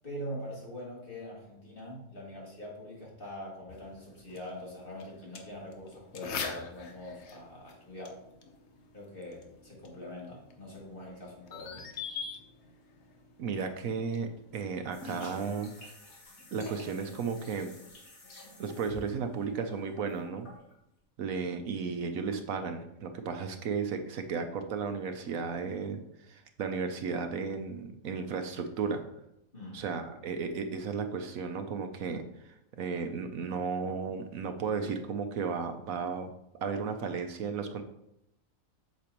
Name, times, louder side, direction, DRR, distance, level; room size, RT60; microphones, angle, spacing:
voice 1, 0.0-8.2 8.9-11.9 29.5-29.8, left 1 dB, 40° left, -4 dB, 2.6 m, -43 dB
sound 1, 3.7-14.7, left 5 dB, 55° left, 1.1 m, -45 dB
voice 2, 13.4-15.9 16.5-17.7 18.6-20.5 21.2-29.0 29.7-36.3 36.6-37.8, right 5 dB, 75° right, 7 dB, 1.1 m, -34 dB
sound 2, 14.9-20.7, left 1 dB, 75° left, 2.2 m, -49 dB
8.3 x 6.9 x 3.0 m, 0.80 s
omnidirectional pair, 1.5 m